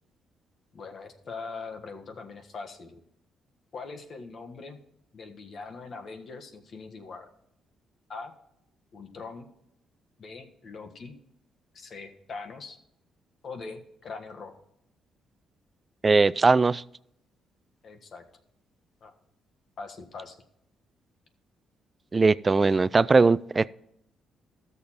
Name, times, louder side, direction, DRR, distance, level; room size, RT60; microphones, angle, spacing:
voice 1, 0.7-3.0 3.7-4.8 5.1-7.3 8.1-8.3 8.9-9.5 10.2-11.1 11.7-12.8 13.4-14.6 17.8-18.2 19.0-19.1 19.8-20.4, left 4 dB, 50° left, 5 dB, 1.4 m, -41 dB
voice 2, 16.0-16.8 22.1-23.7, right 4 dB, 30° right, 19 dB, 0.3 m, -20 dB
13.0 x 6.9 x 4.3 m, 0.77 s
cardioid pair, 90°, 0 cm